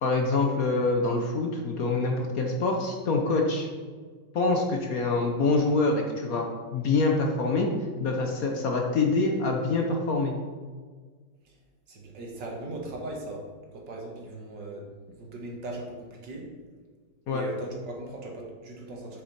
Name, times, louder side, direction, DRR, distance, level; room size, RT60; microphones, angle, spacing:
voice 1, 0.0-3.7 4.3-6.4 6.7-7.7 8.0-10.3 17.3-17.4, left 3 dB, 55° left, 2 dB, 1.2 m, -25 dB
voice 2, 11.9-13.5 13.7-16.5 17.3-19.2, right 2 dB, 65° right, 0 dB, 2.1 m, -39 dB
7.8 x 6.8 x 4.2 m, 1.5 s
omnidirectional pair, 2.1 m